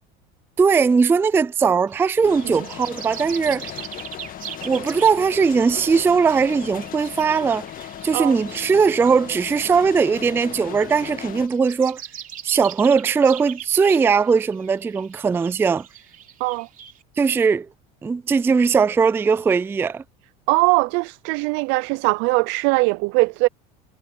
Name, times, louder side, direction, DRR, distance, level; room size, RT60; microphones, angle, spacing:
voice 1, 0.6-3.7 4.6-7.7 8.0-12.0 12.4-15.9 17.2-17.7 18.0-20.0, right 5 dB, 10° right, 0.3 m, -19 dB
sound 1, 1.9-17.0, right 10 dB, 40° right, 3.2 m, -41 dB
sound 2, 2.2-11.5, left 11 dB, 45° left, 1.6 m, -37 dB
voice 2, 20.5-23.5, right 27 dB, 65° right, 0.5 m, -20 dB
supercardioid pair, 105°, 21 cm